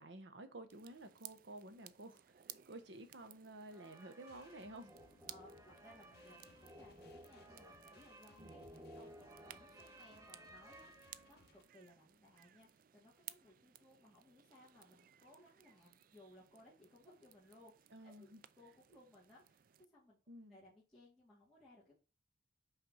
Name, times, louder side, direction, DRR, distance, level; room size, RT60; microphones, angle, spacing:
voice 1, 0.0-2.2 2.7-4.9 8.4-8.5 17.9-18.4 20.3-20.6, right 1 dB, 65° right, 1.0 m, -52 dB
sound 1, 0.7-19.9, right 12 dB, 45° right, 0.3 m, -60 dB
sound 2, 3.7-11.5, right 1 dB, 15° right, 0.7 m, -58 dB
sound 3, 4.3-11.6, left 2 dB, 50° left, 0.9 m, -67 dB
voice 2, 5.3-18.3 18.5-20.2 20.5-22.0, left 1 dB, ahead, 2.1 m, -63 dB
5.7 x 3.3 x 5.5 m
head